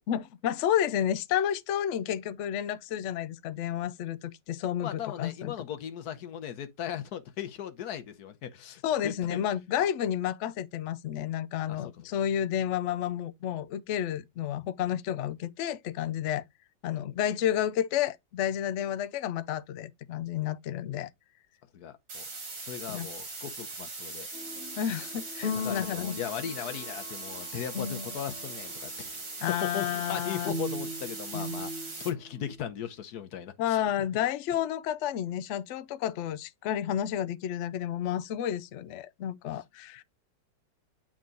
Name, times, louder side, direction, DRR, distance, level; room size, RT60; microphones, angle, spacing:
voice 1, 0.1-5.5 8.8-16.4 16.8-21.1 22.9-23.1 24.8-26.2 29.4-30.5 33.6-40.0, left 10 dB, 85° left, 0.6 m, -31 dB
voice 2, 4.8-9.4 11.7-12.1 21.7-22.2 22.6-24.3 25.5-29.2 29.5-34.1, left 9 dB, 65° left, 1.3 m, -38 dB
sound 1, 22.1-32.1, right 3 dB, 75° right, 3.1 m, -40 dB
sound 2, 24.3-28.7 30.4-32.5, left 3 dB, 40° left, 1.3 m, -38 dB
8.9 x 3.6 x 3.8 m
omnidirectional pair, 1.9 m